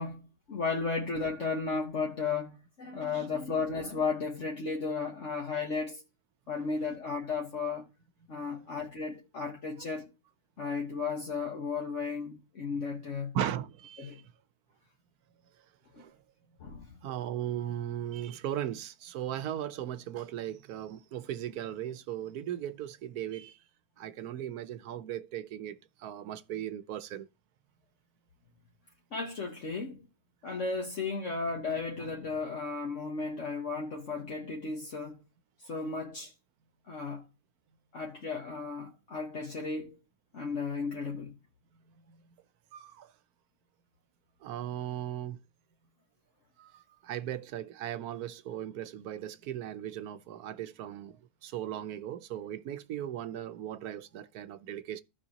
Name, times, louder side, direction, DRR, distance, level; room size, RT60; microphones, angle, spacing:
voice 1, 0.0-6.0 6.5-7.9 8.3-10.1 10.6-13.3 14.0-14.2 15.9-16.0 16.6-16.8 29.1-30.1 30.4-35.2 35.6-36.3 36.9-37.2 37.9-40.0 40.3-41.3, left 4 dB, 55° left, 1.5 m, -34 dB
voice 2, 13.3-14.3 16.0-16.2 17.0-23.6 24.0-27.3 41.9-42.2 42.7-43.1 44.4-45.4 46.6-55.0, right 11 dB, 85° right, 1.2 m, -38 dB
15.0 x 5.2 x 2.8 m
omnidirectional pair, 1.6 m